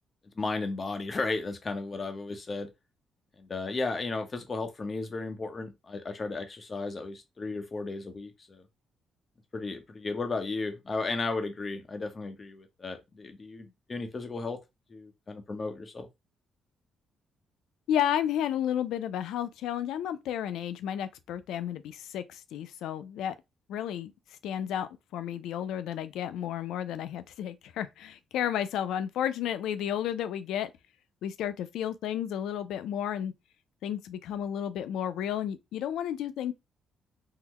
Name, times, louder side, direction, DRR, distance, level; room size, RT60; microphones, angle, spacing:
voice 1, 0.4-2.7 3.4-8.6 9.5-14.6 14.9-16.1, left 3 dB, 35° left, 0.8 m, -34 dB
voice 2, 17.9-23.3 23.7-24.1 24.4-30.7 31.2-33.3 33.8-36.5, left 10 dB, 85° left, 0.4 m, -32 dB
3.8 x 2.1 x 2.9 m
cardioid pair, 90°, 0 cm